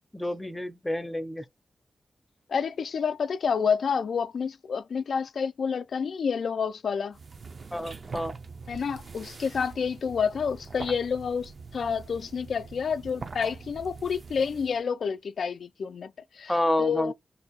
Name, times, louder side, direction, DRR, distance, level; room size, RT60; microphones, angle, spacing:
voice 1, 0.1-1.4 7.7-8.3 16.5-17.1, left 1 dB, 10° left, 0.6 m, -29 dB
voice 2, 2.5-7.2 8.7-16.5 16.8-17.1, left 6 dB, 80° left, 0.4 m, -29 dB
sound 1, 7.1-14.8, right 4 dB, 50° right, 0.4 m, -43 dB
2.7 x 2.3 x 4.1 m
wide cardioid pair, 120°, 0 cm